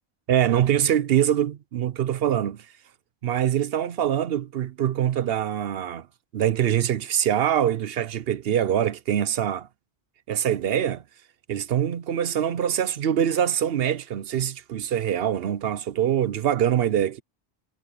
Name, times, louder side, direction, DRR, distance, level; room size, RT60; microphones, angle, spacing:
voice 1, 0.3-2.6 3.2-6.1 6.3-9.7 10.3-11.0 11.5-17.2, right 10 dB, 70° right, 0.8 m, -24 dB
omnidirectional pair, 1.1 m